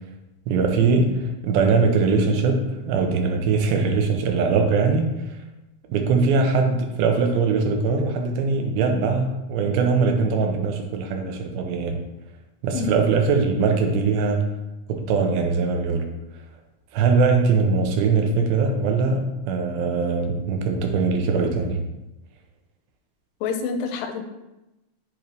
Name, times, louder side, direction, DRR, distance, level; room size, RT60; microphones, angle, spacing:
voice 1, 0.5-5.4 5.9-12.0 12.6-14.5 14.9-16.1 16.9-21.8, right 4 dB, 85° right, 4 dB, 2.6 m, -21 dB
voice 2, 23.4-24.2, left 6 dB, 85° left, 6 dB, 2.3 m, -27 dB
7.6 x 3.2 x 5.2 m, 0.99 s
omnidirectional pair, 4.1 m